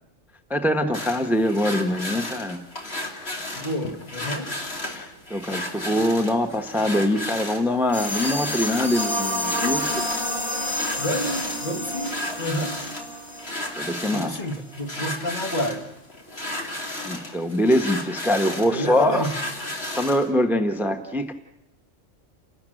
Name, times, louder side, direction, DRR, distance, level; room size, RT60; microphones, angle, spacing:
voice 1, 0.5-2.6 4.9-10.1 13.8-14.4 17.0-19.3 19.9-21.3, left 1 dB, ahead, 1.1 m, -23 dB
sound 1, 0.9-20.3, left 1 dB, 55° left, 3.2 m, -34 dB
voice 2, 3.6-4.5 11.0-12.8 14.1-15.9 18.7-19.4, left 1 dB, 40° left, 1.8 m, -29 dB
sound 2, 7.9-14.2, equal, 20° left, 3.9 m, -29 dB
29.5 x 13.0 x 9.0 m
omnidirectional pair, 1.3 m